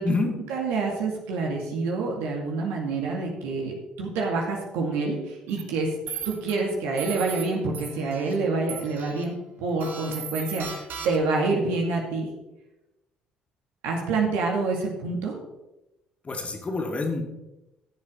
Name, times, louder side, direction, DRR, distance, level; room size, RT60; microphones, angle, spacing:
voice 1, 0.5-5.9 6.3-12.3 13.8-15.4, right 3 dB, 70° right, 0 dB, 2.3 m, -27 dB
sound 1, 5.5-5.6 6.1-6.5 7.0-7.4 7.7-8.3 8.7-9.2 9.8-11.4, right 7 dB, 55° right, 1.5 m, -37 dB
voice 2, 16.2-17.2, left 3 dB, 30° left, 2 dB, 2.3 m, -27 dB
14.5 x 7.2 x 3.8 m, 0.96 s
hypercardioid pair, 55°, 4 cm